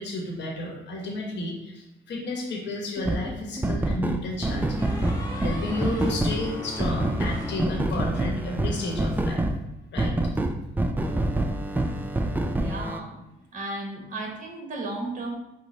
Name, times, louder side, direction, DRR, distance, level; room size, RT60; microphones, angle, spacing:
voice 1, 0.0-4.9 5.4-9.4 9.9-10.2, left 1 dB, 65° left, -1 dB, 1.0 m, -32 dB
sound 1, 3.0-3.8 4.8-8.3, left 2 dB, 20° left, 0.8 m, -39 dB
sound 2, 3.0-3.2 3.6-9.6 10.0-13.0, right 1 dB, 10° right, 0.3 m, -26 dB
voice 2, 12.5-13.2 13.5-15.3, right 2 dB, 40° right, 0 dB, 1.1 m, -34 dB
5.0 x 2.0 x 4.1 m, 0.91 s
cardioid pair, 90°, 20 cm